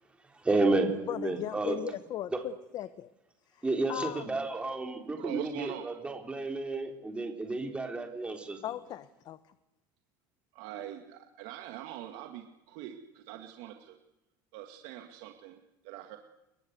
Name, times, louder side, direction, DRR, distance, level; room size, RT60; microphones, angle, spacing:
voice 1, 0.4-1.8 2.3-2.4 3.6-8.6, right 2 dB, 10° right, 4 dB, 3.9 m, -31 dB
voice 2, 1.1-3.1 3.5-3.6 3.9-4.3 8.6-9.4, left 12 dB, 40° left, 13 dB, 1.1 m, -37 dB
voice 3, 5.2-5.9 10.5-14.0 14.5-16.2, right 12 dB, 70° right, 4 dB, 2.3 m, -43 dB
28.5 x 23.5 x 8.2 m, 0.92 s
cardioid pair, 150°, 10 cm